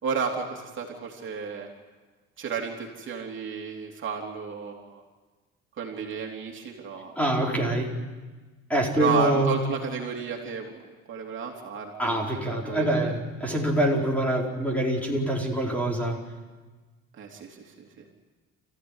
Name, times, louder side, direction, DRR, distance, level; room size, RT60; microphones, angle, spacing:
voice 1, 0.0-1.7 2.4-5.0 5.8-7.1 9.0-13.1 17.1-18.0, right 6 dB, 40° right, 1 dB, 3.4 m, -32 dB
voice 2, 7.2-7.9 8.7-9.6 12.0-16.2, right 1 dB, 5° left, -1 dB, 4.5 m, -25 dB
28.5 x 16.0 x 9.9 m, 1.3 s
cardioid pair, 135°, 30 cm